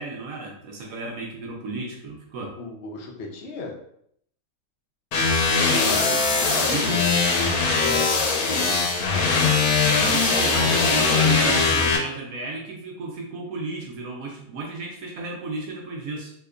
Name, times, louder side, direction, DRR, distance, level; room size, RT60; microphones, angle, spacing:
voice 1, 0.0-2.6 5.5-7.1 8.5-8.9 9.8-16.3, right 3 dB, 75° right, 0 dB, 1.0 m, -33 dB
voice 2, 2.6-3.8 7.8-8.1 10.5-11.5, left 3 dB, 60° left, 0 dB, 0.8 m, -34 dB
sound 1, 5.1-12.0, left 4 dB, 85° left, 1.1 m, -21 dB
2.9 x 2.2 x 3.6 m, 0.69 s
omnidirectional pair, 1.5 m